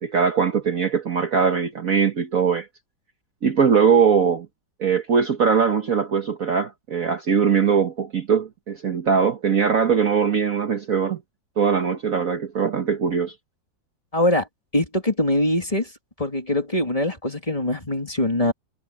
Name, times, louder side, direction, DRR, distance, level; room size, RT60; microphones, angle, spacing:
voice 1, 0.0-2.7 3.4-4.5 4.8-11.2 11.6-13.3, right 6 dB, 50° right, 1.5 m, -21 dB
voice 2, 14.1-14.5 14.7-15.9 16.2-18.5, left 1 dB, 15° left, 3.1 m, -22 dB
omnidirectional pair, 2.1 m